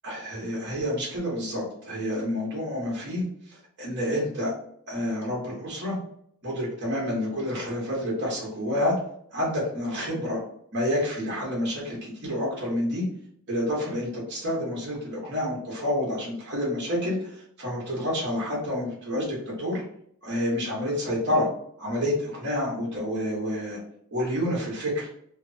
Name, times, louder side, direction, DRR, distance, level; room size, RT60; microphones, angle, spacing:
voice 1, 0.0-4.5 4.9-6.0 6.4-8.9 9.3-10.4 10.7-13.0 13.5-19.8 20.2-21.5 21.8-23.8 24.1-25.1, left 1 dB, 50° right, -4 dB, 1.1 m, -29 dB
3.0 x 2.0 x 2.6 m, 0.66 s
head